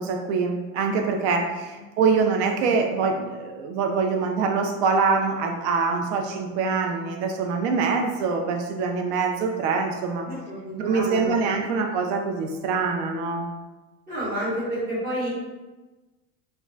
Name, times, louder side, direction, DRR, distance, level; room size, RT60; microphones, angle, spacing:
voice 1, 0.0-10.3 10.8-13.5, right 4 dB, 60° right, 4 dB, 0.5 m, -24 dB
voice 2, 10.2-11.4 14.1-15.3, equal, 25° right, -10 dB, 0.8 m, -30 dB
2.3 x 2.1 x 3.7 m, 1.2 s
cardioid pair, 175°, 37 cm